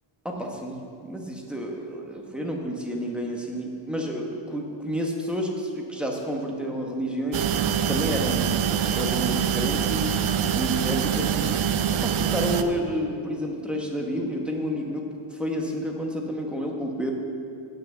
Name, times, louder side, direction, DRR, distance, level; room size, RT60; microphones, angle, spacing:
voice 1, 0.2-7.5 7.9-10.1 10.5-11.7 11.9-17.1, equal, ahead, 0 dB, 1.0 m, -30 dB
sound 1, 7.3-12.6, right 8 dB, 70° right, 0.6 m, -24 dB
8.7 x 5.8 x 7.9 m, 2.5 s
wide cardioid pair, 155°, 50 cm